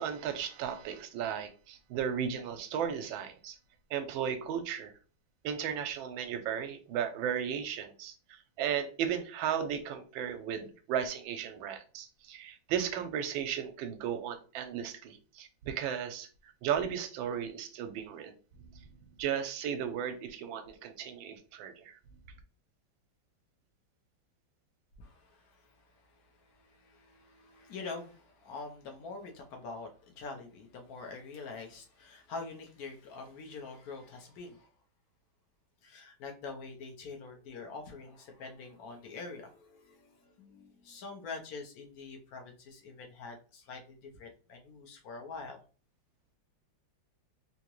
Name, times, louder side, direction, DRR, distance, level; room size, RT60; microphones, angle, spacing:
voice 1, 0.0-3.6 3.9-4.9 5.4-18.3 18.8-18.9 19.2-21.9, right 8 dB, 80° right, 9 dB, 1.3 m, -35 dB
voice 2, 25.0-34.7 35.8-45.6, left 4 dB, 65° left, 3 dB, 1.0 m, -45 dB
3.6 x 2.8 x 3.0 m, 0.38 s
omnidirectional pair, 2.1 m